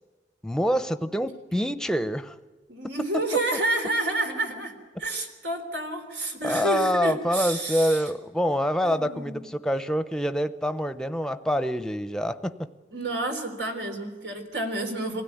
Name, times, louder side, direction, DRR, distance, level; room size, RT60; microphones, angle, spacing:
voice 1, 0.4-2.4 6.4-12.5, equal, 5° left, 11 dB, 0.7 m, -26 dB
voice 2, 2.7-4.7 5.0-8.0 8.8-9.5 12.9-15.2, right 2 dB, 85° right, 5 dB, 3.6 m, -29 dB
25.0 x 16.5 x 9.2 m, 1.3 s
head